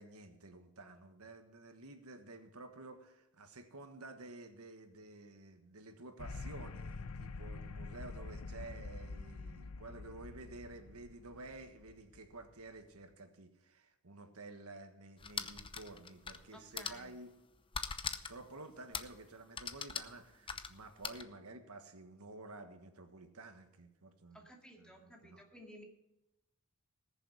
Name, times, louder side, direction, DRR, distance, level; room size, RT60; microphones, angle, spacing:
voice 1, 0.0-17.3 18.3-24.5 24.8-25.4, right 2 dB, 85° right, 7 dB, 1.5 m, -52 dB
sound 1, 6.2-12.7, left 3 dB, 85° left, 0.7 m, -46 dB
sound 2, 15.2-16.4 16.7-17.1 17.7-18.4 18.9-19.2 19.6-21.2, left 6 dB, 25° left, 0.7 m, -41 dB
voice 2, 16.5-17.1 24.3-25.8, equal, 5° left, 1 dB, 2.2 m, -55 dB
19.5 x 7.1 x 5.4 m, 0.93 s
head